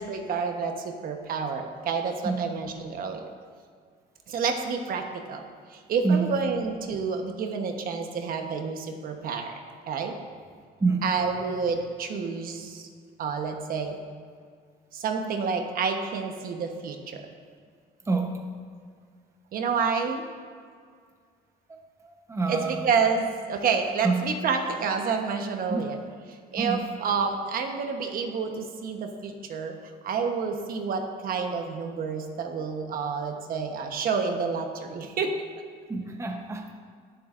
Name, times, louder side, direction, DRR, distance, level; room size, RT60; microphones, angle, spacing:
voice 1, 0.0-3.3 4.3-5.4 5.7-10.1 11.0-12.9 13.2-14.0 14.9-17.2 19.5-20.2 22.5-26.0 26.3-29.8 30.0-35.4, right 5 dB, 60° right, 4 dB, 1.1 m, -29 dB
voice 2, 6.0-6.5 10.8-11.1 18.1-18.4 22.3-23.0 24.0-24.3 25.7-25.9 26.6-26.9 35.9-36.7, right 3 dB, 15° right, 3 dB, 0.9 m, -27 dB
19.0 x 7.4 x 2.6 m, 2.1 s
cardioid pair, 110°, 17 cm